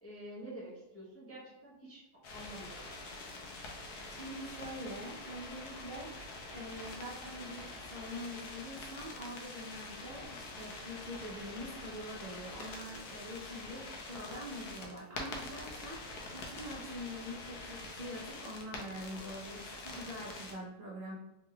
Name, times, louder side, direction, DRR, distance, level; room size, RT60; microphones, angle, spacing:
voice 1, 0.0-2.0 2.3-2.9, right 1 dB, 15° left, -6 dB, 0.5 m, -48 dB
sound 1, 2.2-20.5, left 2 dB, 80° left, 1.2 m, -46 dB
voice 2, 4.1-21.2, equal, 55° right, -6 dB, 0.5 m, -45 dB
3.6 x 2.3 x 3.6 m, 0.93 s
omnidirectional pair, 1.7 m